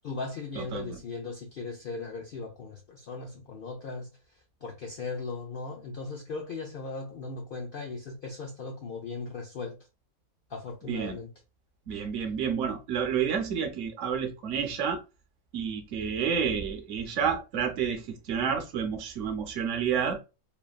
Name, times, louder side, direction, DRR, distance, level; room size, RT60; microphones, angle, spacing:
voice 1, 0.0-4.1 4.6-9.8 10.5-11.3, left 4 dB, 75° left, 0.5 m, -38 dB
voice 2, 0.6-1.0 10.8-11.2 11.9-15.0 15.5-20.2, right 7 dB, 65° right, 0.9 m, -30 dB
3.1 x 2.2 x 2.3 m
omnidirectional pair, 1.5 m